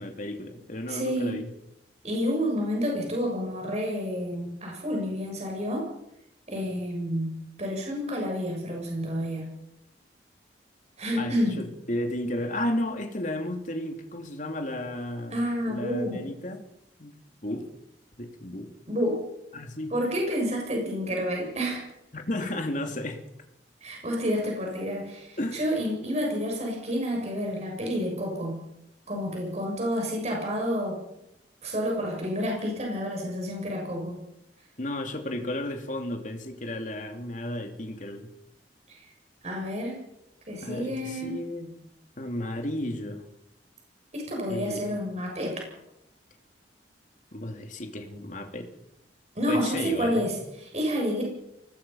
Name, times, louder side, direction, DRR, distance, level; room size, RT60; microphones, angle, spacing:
voice 1, 0.0-1.4 11.2-15.3 15.7-16.6 17.0-17.7 18.2-18.7 19.5-19.9 22.1-23.2 25.4-25.6 34.8-38.3 40.6-41.7 42.2-43.2 44.5-44.8 47.3-48.7 49.5-50.3, left 1 dB, 45° left, 4 dB, 3.0 m, -33 dB
voice 2, 0.9-1.3 2.0-5.8 6.5-7.3 7.6-9.5 11.0-11.6 15.3-16.2 18.9-19.2 19.9-21.8 23.8-28.6 29.1-31.0 31.6-34.2 38.9-39.1 39.4-40.0 40.5-41.4 44.1-45.6 49.4-51.2, equal, 40° right, 0 dB, 7.1 m, -29 dB
24.0 x 19.5 x 5.7 m, 0.82 s
head